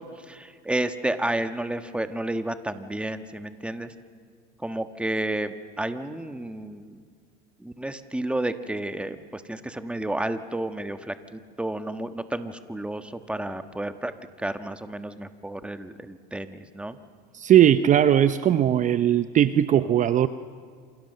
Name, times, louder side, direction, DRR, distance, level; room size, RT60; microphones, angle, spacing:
voice 1, 0.0-3.9 4.6-7.0 7.6-14.1 14.4-17.0, right 1 dB, 5° right, 9 dB, 1.4 m, -31 dB
voice 2, 17.3-20.3, right 10 dB, 35° right, 12 dB, 0.7 m, -19 dB
28.0 x 27.5 x 6.8 m, 2.1 s
supercardioid pair, 115°, 21 cm